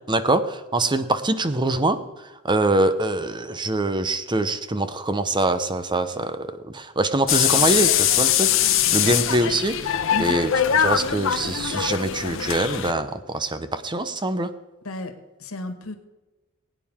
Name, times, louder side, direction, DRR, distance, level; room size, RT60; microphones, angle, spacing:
voice 1, 0.1-2.0 2.4-8.5 8.9-10.5 10.8-14.5, right 2 dB, 20° right, 11 dB, 0.8 m, -24 dB
sound 1, 7.3-12.9, left 10 dB, 65° left, 0.9 m, -22 dB
voice 2, 8.9-9.2 10.1-10.4 14.8-15.1 15.4-16.0, left 1 dB, 80° left, 7 dB, 1.7 m, -33 dB
20.5 x 9.3 x 3.6 m, 1.1 s
head